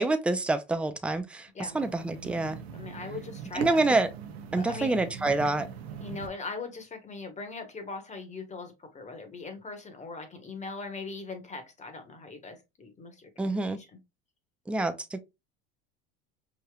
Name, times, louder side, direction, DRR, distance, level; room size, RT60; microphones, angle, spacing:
voice 1, 0.0-1.5 1.7-2.6 3.5-4.1 4.5-5.7 13.4-13.8 14.7-15.2, right 2 dB, 5° right, 0.4 m, -27 dB
sound 1, 1.6-6.3, right 7 dB, 90° right, 0.8 m, -41 dB
voice 2, 2.7-3.8 4.6-5.0 6.0-14.0, left 4 dB, 20° left, 1.1 m, -40 dB
4.9 x 2.7 x 2.2 m
supercardioid pair, 100°, 31 cm